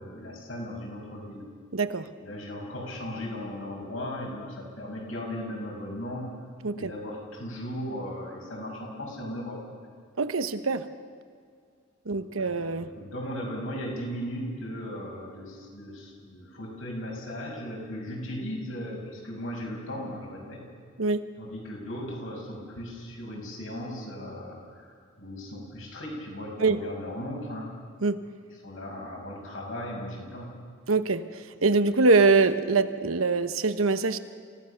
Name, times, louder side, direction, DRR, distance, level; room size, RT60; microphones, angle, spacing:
voice 1, 0.0-1.5 2.2-6.3 6.7-9.6 12.1-20.6 21.4-27.7 28.6-30.5, equal, 75° left, -1 dB, 6.3 m, -37 dB
voice 2, 1.7-2.1 6.6-6.9 10.2-10.9 12.1-12.9 21.0-21.2 26.6-26.8 28.0-28.2 30.9-34.2, right 3 dB, 85° right, 11 dB, 1.1 m, -24 dB
27.0 x 17.0 x 6.7 m, 2.2 s
head